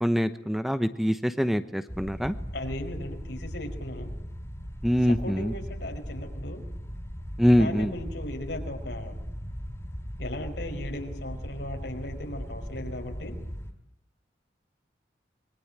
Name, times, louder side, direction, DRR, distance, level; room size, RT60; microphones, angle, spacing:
voice 1, 0.0-2.3 4.8-5.5 7.4-7.9, equal, ahead, 10 dB, 1.0 m, -24 dB
sound 1, 1.9-13.7, equal, 15° left, 3.7 m, -38 dB
voice 2, 2.5-4.1 5.0-6.6 7.6-9.2 10.2-13.3, left 1 dB, 80° left, 3 dB, 5.1 m, -37 dB
25.5 x 23.0 x 8.8 m, 0.77 s
head